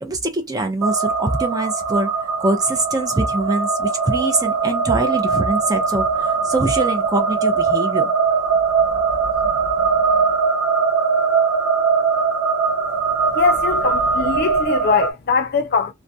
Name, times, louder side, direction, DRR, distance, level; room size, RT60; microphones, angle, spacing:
voice 1, 0.0-2.1 2.4-8.1, right 2 dB, 15° right, 0.5 m, -23 dB
sound 1, 0.8-15.1, right 5 dB, 75° right, 0.8 m, -20 dB
voice 2, 13.4-15.9, left 5 dB, 45° left, 0.4 m, -21 dB
2.4 x 2.0 x 2.6 m
head